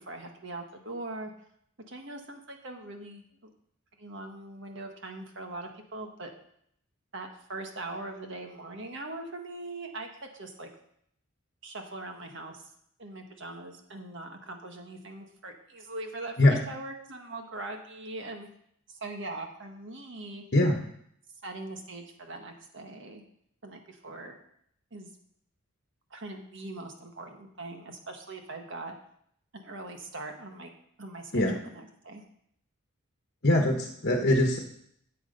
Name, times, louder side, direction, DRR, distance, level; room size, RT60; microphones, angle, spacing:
voice 1, 0.0-1.3 1.9-3.5 4.0-6.3 7.1-10.7 11.6-12.7 13.0-18.5 18.9-20.4 21.4-23.2 23.6-24.4 24.9-25.1 26.1-28.9 29.5-30.7 31.0-32.2, right 2 dB, 60° right, 3 dB, 1.5 m, -41 dB
voice 2, 33.4-34.6, left 1 dB, 50° left, 2 dB, 1.3 m, -22 dB
12.5 x 7.7 x 5.3 m, 0.71 s
head